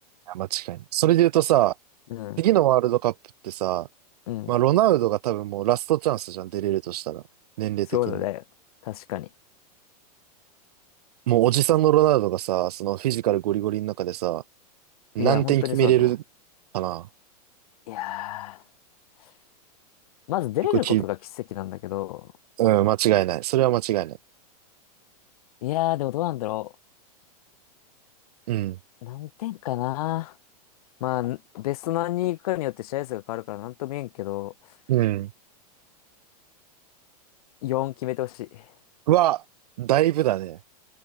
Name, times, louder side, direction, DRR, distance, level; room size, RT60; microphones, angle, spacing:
voice 1, 0.3-1.7 2.4-3.1 3.4-3.9 4.5-7.2 7.6-8.2 11.3-14.4 15.1-16.2 16.7-17.1 20.8-21.0 22.6-24.2 28.5-28.8 34.9-35.3 39.1-39.4 39.8-40.6, right 14 dB, 70° right, 0.9 m, -22 dB
voice 2, 7.9-8.4 8.8-9.3 15.2-16.1 17.9-18.6 20.3-21.2 21.5-22.3 25.6-26.7 29.0-30.3 31.0-34.5 37.6-38.7, left 16 dB, 65° left, 1.1 m, -29 dB
supercardioid pair, 140°, 20 cm